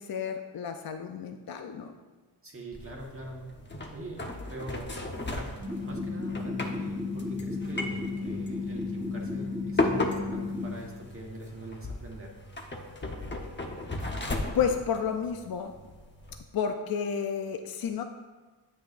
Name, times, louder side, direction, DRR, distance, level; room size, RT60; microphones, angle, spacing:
voice 1, 0.0-1.9 14.5-15.7 16.5-18.0, left 7 dB, 60° left, 6 dB, 0.6 m, -31 dB
voice 2, 2.4-3.5 3.9-4.2 4.5-4.9 5.3-12.3, right 1 dB, 30° right, -2 dB, 1.3 m, -43 dB
sound 1, 2.7-16.4, left 2 dB, 25° left, 0.9 m, -36 dB
sound 2, 5.6-10.7, left 3 dB, 5° right, 1.0 m, -33 dB
9.1 x 8.3 x 2.5 m, 1.3 s
wide cardioid pair, 85°, 41 cm